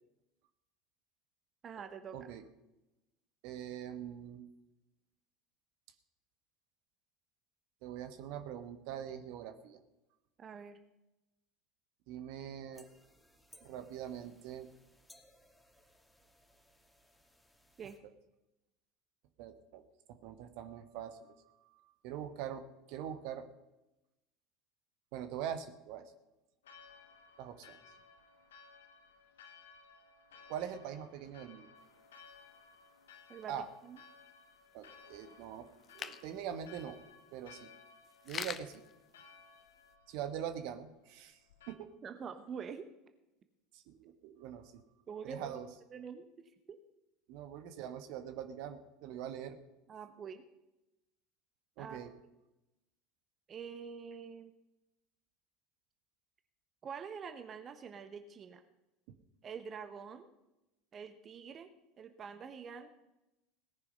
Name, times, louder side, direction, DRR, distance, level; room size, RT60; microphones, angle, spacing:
voice 1, 1.6-2.3 10.4-10.8 17.8-18.0 33.3-33.6 33.8-34.0 42.0-42.9 45.1-45.6 45.9-46.8 49.9-50.4 51.8-52.1 53.5-54.5 56.8-58.6 59.4-60.3 60.9-61.7 62.0-62.9, right 6 dB, 35° right, 9 dB, 1.0 m, -46 dB
voice 2, 3.4-4.4 7.8-9.8 12.1-12.9 13.6-14.7 19.4-19.8 20.1-22.6 22.9-23.5 25.1-26.0 27.4-27.8 30.5-31.7 33.5-33.7 34.7-35.7 35.9-37.0 37.3-37.7 38.2-38.8 40.1-41.4 41.7-41.9 43.7-44.7 45.2-45.7 47.3-49.6 51.8-52.1, right 9 dB, 60° right, 9 dB, 1.2 m, -43 dB
sound 1, 12.7-18.0, left 1 dB, 5° left, 2.4 m, -64 dB
Church bell, 26.6-41.8, left 5 dB, 75° left, 1.4 m, -59 dB
sound 2, 31.8-39.9, left 7 dB, 35° left, 0.8 m, -50 dB
18.0 x 9.7 x 5.5 m, 0.96 s
figure-of-eight pair, 70°, 0 cm